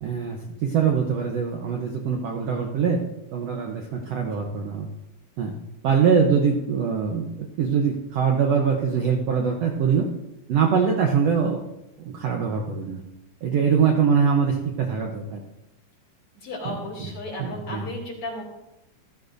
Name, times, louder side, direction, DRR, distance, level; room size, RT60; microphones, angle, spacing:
voice 1, 0.0-3.0 3.3-4.9 5.4-5.5 5.8-10.1 10.5-11.6 12.0-13.0 13.4-15.4 16.6-17.1 17.4-17.9, right 6 dB, 70° right, 1 dB, 1.6 m, -23 dB
voice 2, 16.4-18.4, left 1 dB, 45° left, -2 dB, 3.4 m, -34 dB
14.5 x 13.0 x 2.6 m, 0.93 s
omnidirectional pair, 3.7 m